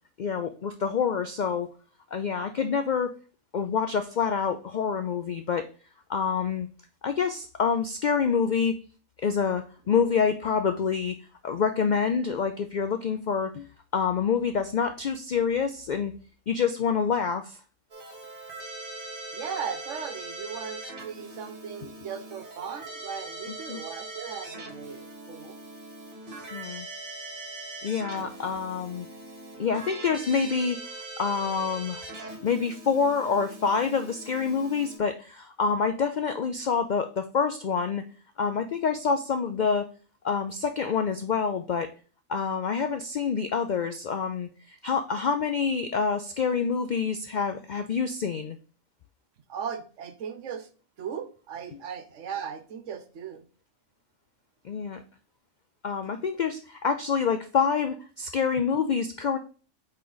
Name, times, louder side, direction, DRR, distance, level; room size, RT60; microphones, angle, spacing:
voice 1, 0.2-1.7 2.1-3.1 3.5-5.7 6.1-6.7 7.0-8.8 9.2-11.2 11.4-13.7 13.9-16.1 16.5-17.6 23.7-23.8 26.5-26.9 27.8-29.1 29.6-30.8 31.2-32.0 32.4-38.0 38.4-39.9 40.2-41.9 42.3-48.6 54.6-55.0 55.8-59.4, left 6 dB, 70° left, 8 dB, 0.4 m, -27 dB
Keyboard (musical), 17.9-35.0, right 2 dB, 45° right, 1.5 m, -41 dB
voice 2, 19.3-25.6 49.5-50.7 51.0-53.4, right 7 dB, 75° right, 9 dB, 1.1 m, -37 dB
8.3 x 3.3 x 3.9 m, 0.39 s
omnidirectional pair, 1.3 m